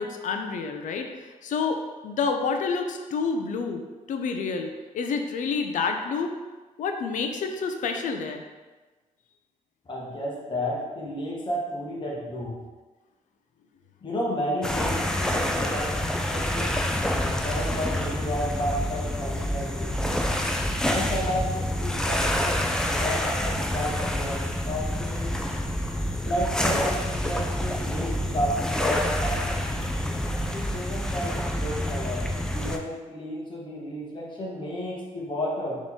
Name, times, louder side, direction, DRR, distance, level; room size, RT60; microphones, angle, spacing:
voice 1, 0.0-3.8 4.1-6.3 6.8-8.4, left 5 dB, 70° left, 5 dB, 0.5 m, -29 dB
voice 2, 9.9-12.6 14.0-20.3 20.9-25.4 26.2-29.6 30.5-35.8, equal, 35° left, -4 dB, 1.1 m, -32 dB
sound 1, 14.6-32.8, left 1 dB, 5° left, 0.4 m, -27 dB
4.0 x 3.1 x 3.5 m, 1.3 s
cardioid pair, 85°, 13 cm